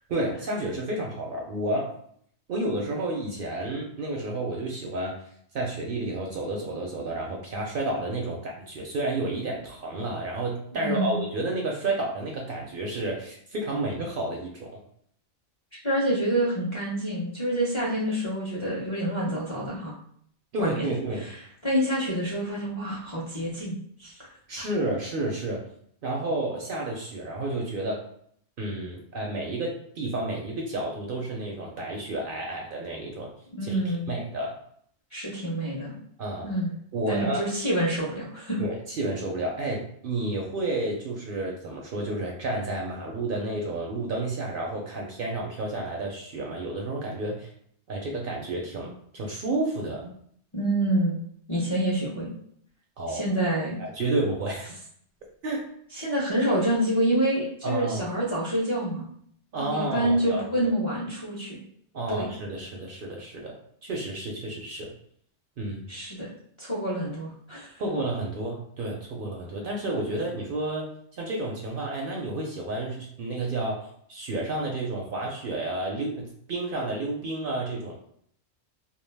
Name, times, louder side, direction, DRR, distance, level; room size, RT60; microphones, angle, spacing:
voice 1, 0.1-1.9 2.5-5.2 5.5-14.8 20.5-21.3 24.5-25.7 26.0-28.0 28.6-33.3 33.6-33.8 34.1-34.6 36.2-36.5 36.9-37.5 38.6-47.5 47.9-50.1 53.0-53.2 53.8-54.7 55.4-55.7 56.0-56.1 57.6-58.1 59.5-60.4 61.9-63.6 63.8-64.9 65.6-65.9 67.8-70.9 71.2-77.9, right 2 dB, 60° right, 0 dB, 0.6 m, -31 dB
voice 2, 10.7-11.2 15.7-19.9 20.6-20.9 21.2-21.4 21.6-24.3 24.6-24.7 33.6-34.1 35.1-36.0 36.4-36.7 37.1-38.6 50.5-51.2 51.5-52.3 53.1-53.8 55.9-59.1 59.6-61.6 62.1-62.3 65.9-66.3 66.6-67.7, right 1 dB, 35° left, -6 dB, 0.5 m, -27 dB
2.2 x 2.2 x 3.3 m, 0.64 s
omnidirectional pair, 1.2 m